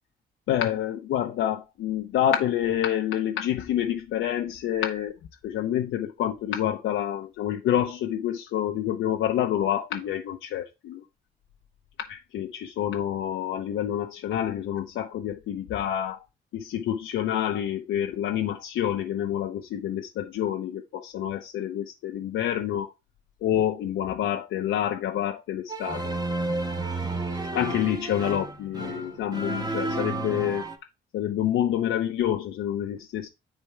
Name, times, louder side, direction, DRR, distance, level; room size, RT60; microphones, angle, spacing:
voice 1, 0.5-5.2 5.4-11.0 12.1-16.2 16.5-22.9 23.4-26.1 27.5-30.7 31.1-33.3, left 11 dB, 80° left, 0.8 m, -28 dB
sound 1, 25.7-30.7, right 2 dB, 20° right, 1.4 m, -31 dB
9.9 x 3.4 x 4.5 m
cardioid pair, 90°, 20 cm